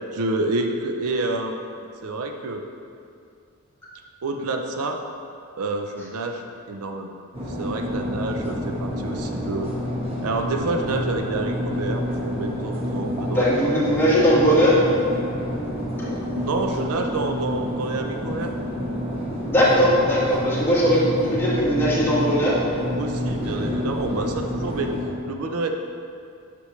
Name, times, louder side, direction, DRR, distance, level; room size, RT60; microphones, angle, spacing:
voice 1, 0.1-1.6 2.0-2.6 4.2-5.0 5.6-7.1 7.5-9.7 10.2-13.5 14.0-14.1 16.3-18.5 20.8-20.9 23.0-24.9 25.2-25.7, right 2 dB, 75° right, 4 dB, 0.5 m, -28 dB
sound 1, 7.3-25.1, equal, 25° right, 1.1 m, -28 dB
voice 2, 13.3-14.8 19.5-21.0 21.3-22.6, equal, 10° left, -8 dB, 1.6 m, -19 dB
8.2 x 6.0 x 3.1 m, 2.4 s
head